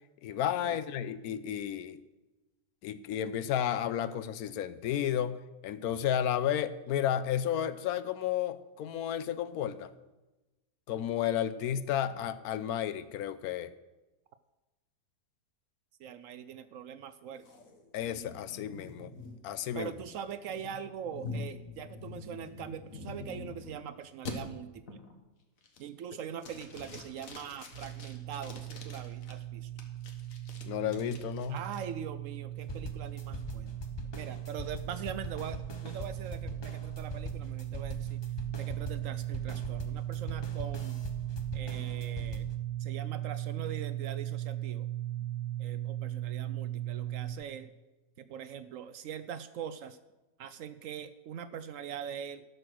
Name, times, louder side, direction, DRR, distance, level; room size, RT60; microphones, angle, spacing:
voice 1, 0.2-2.0 2.8-5.3 5.6-9.9 10.9-13.7 17.9-19.1 19.4-19.9 30.6-31.6, left 10 dB, 75° left, 14 dB, 1.1 m, -32 dB
voice 2, 16.0-17.5 19.7-25.0 25.8-29.7 31.5-33.8 34.1-38.2 38.6-41.0 41.5-42.5 42.8-44.9 45.6-47.7 48.2-50.0 50.4-52.5, right 8 dB, 70° right, 12 dB, 0.8 m, -42 dB
sound 1, 17.4-23.8 24.3-24.4 24.9-25.2 25.6-26.0 26.4-29.3 29.8-31.8, left 3 dB, 60° left, 1.6 m, -45 dB
sound 2, 27.7-47.3, right 13 dB, 45° right, 1.4 m, -38 dB
sound 3, 32.7-42.5, left 2 dB, 40° left, 0.3 m, -42 dB
12.5 x 6.4 x 6.2 m, 1.1 s
omnidirectional pair, 1.6 m